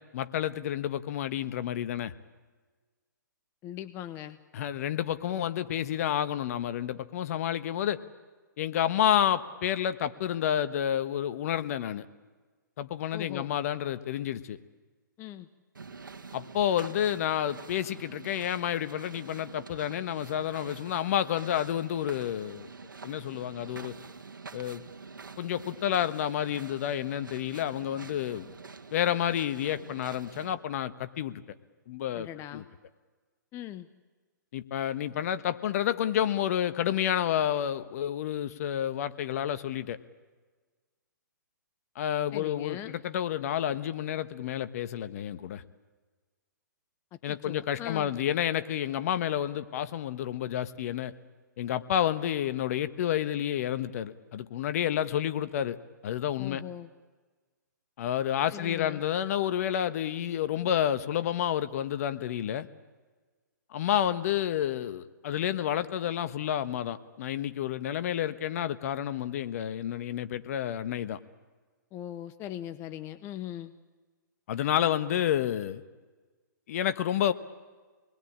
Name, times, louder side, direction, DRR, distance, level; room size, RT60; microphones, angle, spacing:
voice 1, 0.1-2.1 4.5-8.0 8.6-12.0 12.8-14.6 16.3-22.7 23.0-23.9 24.5-24.8 25.4-28.5 28.9-31.4 31.9-32.6 34.5-40.0 41.9-45.6 47.2-51.1 51.6-55.8 56.0-56.6 58.0-62.7 63.7-71.2 74.5-75.8 76.7-77.3, left 10 dB, 50° left, 12 dB, 1.3 m, -30 dB
voice 2, 3.6-4.4 13.1-13.5 15.2-15.5 32.1-32.6 33.5-33.9 42.3-43.0 47.1-48.1 56.4-56.9 58.5-59.0 71.9-73.7, left 12 dB, 25° left, 13 dB, 0.8 m, -40 dB
sound 1, 15.7-30.5, right 4 dB, 85° right, 2.0 m, -47 dB
27.0 x 21.0 x 8.8 m, 1.4 s
hypercardioid pair, 135°, 11 cm